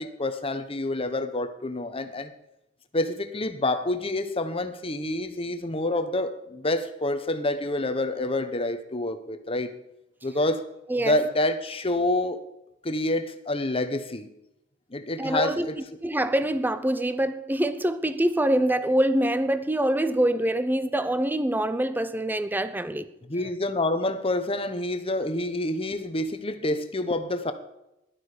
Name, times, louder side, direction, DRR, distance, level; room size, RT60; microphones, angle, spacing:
voice 1, 0.0-2.3 2.9-9.7 10.2-10.6 11.0-12.4 12.8-14.3 14.9-15.8 23.3-27.5, left 2 dB, 30° left, 1.1 m, -27 dB
voice 2, 15.2-15.7 16.0-23.1, right 1 dB, 10° right, 0.6 m, -25 dB
16.0 x 12.0 x 5.1 m
head